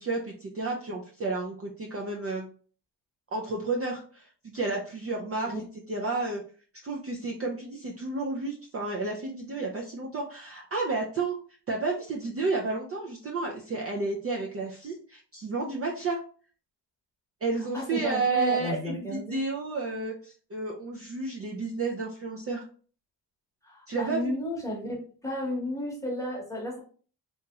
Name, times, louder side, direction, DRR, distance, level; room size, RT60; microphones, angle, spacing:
voice 1, 0.0-2.5 3.3-5.5 5.9-6.4 6.8-11.4 11.7-16.2 17.4-22.7 23.9-24.4, right 3 dB, 35° right, -1 dB, 0.4 m, -31 dB
voice 2, 17.7-19.4 23.6-25.0 25.2-26.8, left 1 dB, 5° left, -3 dB, 0.9 m, -33 dB
2.9 x 2.9 x 2.3 m, 0.42 s
cardioid pair, 115°, 42 cm